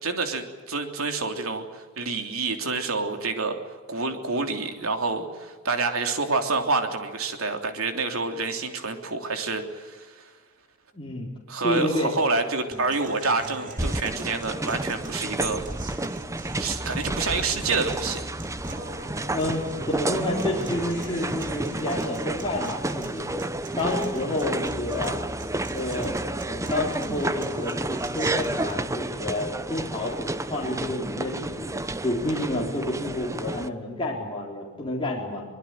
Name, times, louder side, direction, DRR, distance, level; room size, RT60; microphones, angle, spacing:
voice 1, 0.0-3.6 3.9-10.2 11.5-15.6 16.6-18.2, right 3 dB, 85° right, 5 dB, 3.3 m, -28 dB
voice 2, 10.9-11.3 11.6-12.1 19.3-23.3 23.8-25.2 25.7-26.2 26.4-31.7 32.0-35.4, left 1 dB, 25° left, -3 dB, 4.1 m, -29 dB
sound 1, 12.7-28.7, right 1 dB, 40° right, 3.7 m, -41 dB
sound 2, 13.8-33.7, right 2 dB, 15° right, 0.8 m, -31 dB
24.0 x 21.5 x 9.2 m, 1.4 s
head